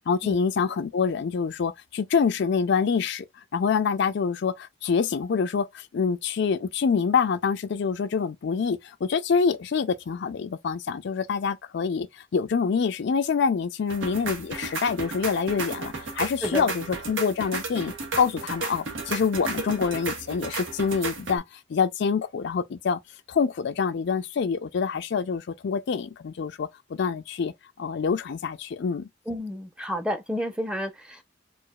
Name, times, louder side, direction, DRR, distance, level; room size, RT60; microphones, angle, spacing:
voice 1, 0.0-3.3 3.5-21.4 21.7-23.0 23.3-27.5 27.8-29.1, left 5 dB, 65° left, 0.4 m, -26 dB
sound 1, 13.9-21.4, right 3 dB, 90° right, 1.1 m, -33 dB
voice 2, 16.4-16.7 29.3-31.2, equal, 5° right, 0.6 m, -30 dB
4.6 x 2.4 x 2.3 m
head